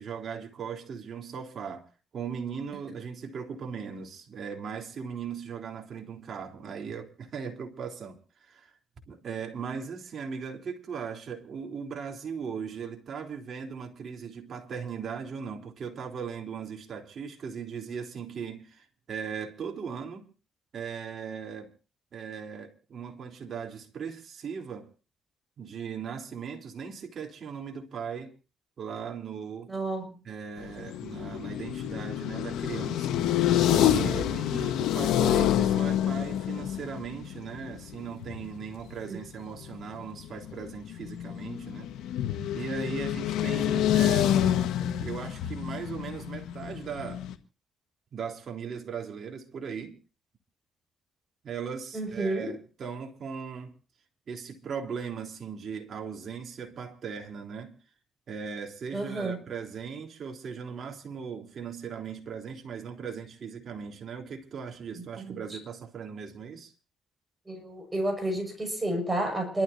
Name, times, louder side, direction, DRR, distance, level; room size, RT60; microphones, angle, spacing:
voice 1, 0.0-1.9 2.1-8.7 9.1-20.3 20.7-21.7 22.1-24.9 25.6-28.3 28.8-29.8 30.2-33.2 33.6-41.9 42.5-47.2 48.1-50.0 51.4-53.7 54.3-57.7 58.3-66.7, right 6 dB, 55° right, 3.6 m, -38 dB
voice 2, 29.7-30.1 34.1-34.3 39.1-39.2 43.7-43.9 51.9-52.5 58.9-59.4 65.0-65.4 67.5-69.6, right 1 dB, 15° right, 6.1 m, -31 dB
sound 1, 30.6-38.6 39.0-39.2 39.5-47.3, left 11 dB, 85° left, 1.6 m, -28 dB
28.5 x 13.0 x 2.8 m
cardioid pair, 90°, 0 cm